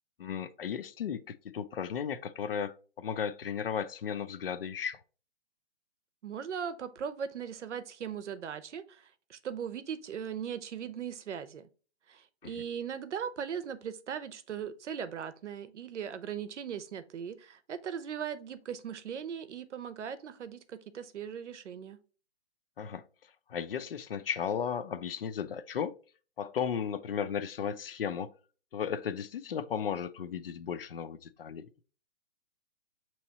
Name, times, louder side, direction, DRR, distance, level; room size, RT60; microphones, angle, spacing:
voice 1, 0.2-5.0 12.4-12.5 22.8-23.0 23.5-25.9 26.4-28.3 28.7-31.8, left 7 dB, 55° left, 0.5 m, -35 dB
voice 2, 6.2-11.7 12.1-22.0, right 8 dB, 85° right, 0.8 m, -39 dB
6.3 x 3.0 x 2.8 m
hypercardioid pair, 170°, 35 cm